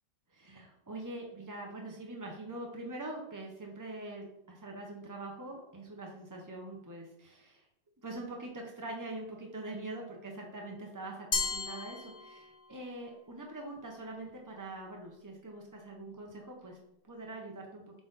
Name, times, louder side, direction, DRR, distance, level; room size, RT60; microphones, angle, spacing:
voice 1, 0.3-7.6 8.0-16.8 17.1-17.8, right 2 dB, 25° right, 0 dB, 0.4 m, -43 dB
Glass, 11.3-12.8, left 4 dB, 35° left, 0.7 m, -35 dB
7.5 x 4.8 x 4.0 m, 0.82 s
omnidirectional pair, 1.8 m